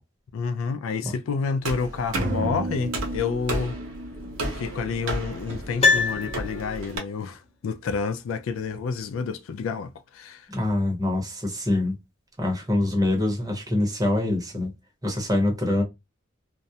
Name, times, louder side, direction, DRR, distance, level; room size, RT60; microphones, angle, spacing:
voice 1, 0.3-3.8 4.5-10.5, left 5 dB, 80° left, 0.3 m, -29 dB
sound 1, 1.6-7.0, right 1 dB, 70° right, 0.7 m, -33 dB
sound 2, 2.1-5.9, right 2 dB, 40° right, 0.4 m, -34 dB
Piano, 5.8-7.1 7.3-7.4, left 4 dB, 30° left, 0.6 m, -23 dB
voice 2, 10.5-12.0 12.4-14.7 15.0-15.8, left 1 dB, 20° right, 0.8 m, -24 dB
2.3 x 2.0 x 2.7 m
head